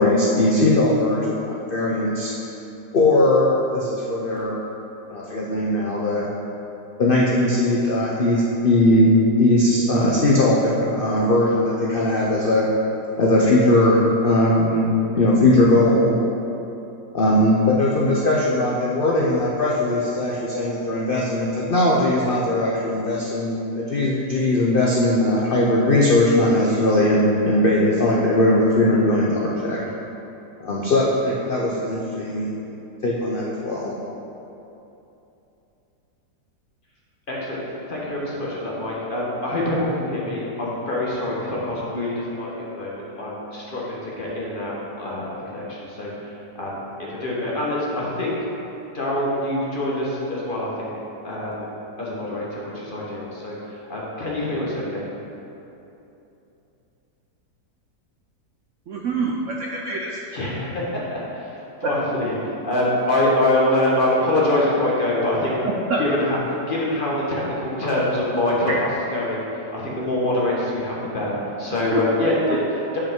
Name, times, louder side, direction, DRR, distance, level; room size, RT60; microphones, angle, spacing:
voice 1, 0.0-2.3 2.9-4.6 5.1-6.3 7.0-9.1 9.4-12.7 13.1-14.9 15.1-16.1 17.1-29.8 30.6-32.5 33.0-34.0, left 1 dB, 55° left, -4 dB, 0.6 m, -19 dB
voice 2, 37.3-37.6 37.9-48.4 48.9-50.9 51.2-51.7 52.0-55.1 60.3-65.6 66.0-73.0, left 1 dB, 35° left, -5 dB, 1.2 m, -25 dB
voice 3, 58.9-60.2 65.6-66.0 71.9-72.6, right 3 dB, 65° right, -2 dB, 0.8 m, -26 dB
8.6 x 5.2 x 3.6 m, 2.9 s
omnidirectional pair, 1.7 m